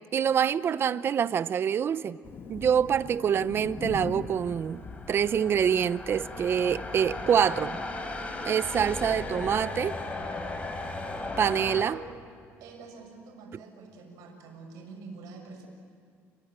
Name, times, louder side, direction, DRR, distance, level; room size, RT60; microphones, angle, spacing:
voice 1, 0.1-2.2 2.5-4.8 5.1-7.8 8.4-10.0 11.4-12.0, right 8 dB, 45° right, 16 dB, 0.7 m, -26 dB
Thunder, 2.2-7.2, left 5 dB, 40° left, 1.5 m, -42 dB
sound 1, 3.9-11.8, left 2 dB, 25° left, 3.7 m, -36 dB
voice 2, 12.6-15.7, right 4 dB, 85° right, 2 dB, 6.3 m, -46 dB
29.5 x 21.5 x 8.9 m, 2.2 s
cardioid pair, 120°, 6 cm